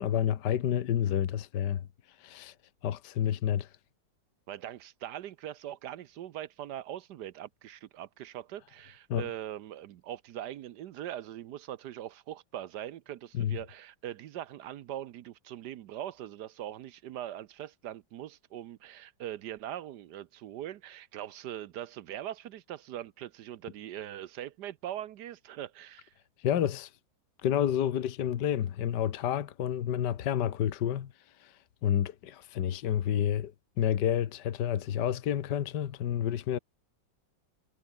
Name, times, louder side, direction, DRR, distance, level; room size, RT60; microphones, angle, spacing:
voice 1, 0.0-1.9 2.2-2.5 2.8-3.7 9.1-9.3 13.3-13.6 26.4-26.9 27.4-31.1 31.4-36.6, left 10 dB, 70° left, 1.7 m, -29 dB
voice 2, 4.5-26.1, right 12 dB, 70° right, 1.3 m, -41 dB
omnidirectional pair, 1.9 m